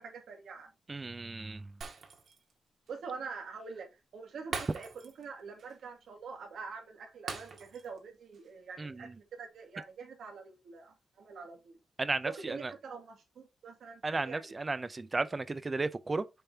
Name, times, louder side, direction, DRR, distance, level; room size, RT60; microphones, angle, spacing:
voice 1, 0.0-0.7 2.9-11.8 12.2-14.5, right 5 dB, 90° right, 2.3 m, -45 dB
voice 2, 0.9-1.7 8.8-9.1 12.0-12.7 14.0-16.2, right 3 dB, 20° right, 0.6 m, -34 dB
Shatter, 1.8-2.5 2.9-3.0 4.5-5.3 5.6-5.8 7.3-8.0 8.3-8.5, right 5 dB, 60° right, 1.8 m, -42 dB
6.9 x 5.3 x 2.8 m
wide cardioid pair, 165°, 0 cm